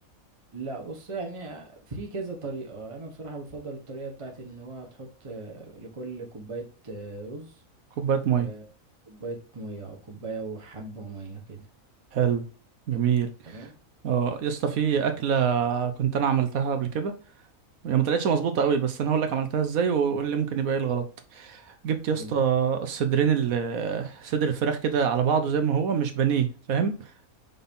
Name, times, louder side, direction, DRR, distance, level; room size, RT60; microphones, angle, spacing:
voice 1, 0.5-7.6 8.4-8.6 9.1-11.6 13.4-13.7 22.1-22.4, right 3 dB, 25° right, 1.3 m, -38 dB
voice 2, 8.0-8.5 12.1-12.4 12.9-13.7 14.0-17.1 17.8-21.0 21.3-26.9, right 7 dB, 80° right, 1.3 m, -25 dB
5.4 x 4.0 x 5.4 m
omnidirectional pair, 1.5 m